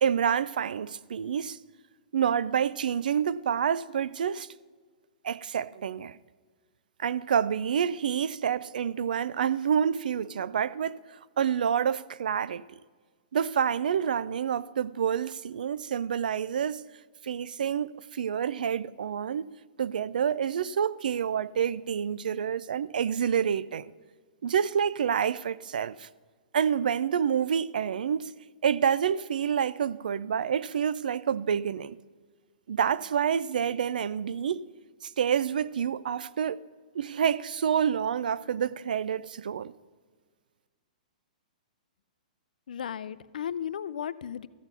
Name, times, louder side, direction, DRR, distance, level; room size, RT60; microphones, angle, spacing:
voice 1, 0.0-1.6 2.1-4.5 5.2-6.2 7.0-11.0 11.4-12.6 13.3-16.8 17.2-19.5 19.8-23.9 24.4-26.1 26.5-28.3 28.6-32.0 32.7-34.6 35.0-36.6 36.9-39.7, right 8 dB, 85° right, 0.4 m, -28 dB
voice 2, 42.7-44.5, left 9 dB, 85° left, 0.4 m, -35 dB
13.5 x 8.1 x 5.5 m
hypercardioid pair, 165°, 4 cm